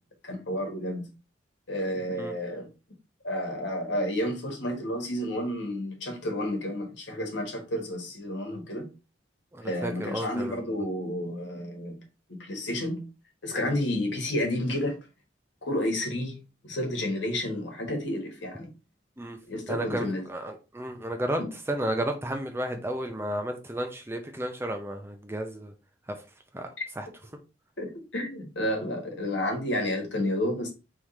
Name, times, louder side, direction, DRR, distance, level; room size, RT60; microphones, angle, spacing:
voice 1, 0.2-1.1 1.7-2.7 3.2-8.9 9.6-12.0 12.3-13.1 13.4-15.0 15.6-16.4 16.6-18.7 19.5-20.2 21.4-21.5 26.8-26.9 27.8-30.7, left 1 dB, 65° left, 1.4 m, -31 dB
voice 2, 9.5-10.6 19.2-19.4 19.7-25.7 26.5-26.7 27.0-27.1, right 1 dB, 10° right, 0.5 m, -32 dB
3.6 x 3.2 x 4.1 m
head